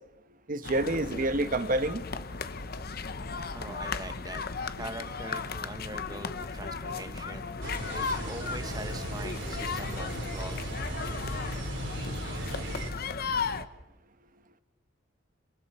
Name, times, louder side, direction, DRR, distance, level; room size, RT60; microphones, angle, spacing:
voice 1, 0.5-2.0, right 2 dB, 45° right, 10 dB, 1.3 m, -28 dB
sound 1, 0.6-13.7, left 4 dB, 50° left, 1.0 m, -36 dB
voice 2, 3.5-10.6, right 2 dB, 20° right, 9 dB, 1.2 m, -43 dB
sound 2, 7.6-12.9, right 1 dB, 70° right, 3.4 m, -36 dB
27.0 x 26.5 x 4.4 m, 0.96 s
head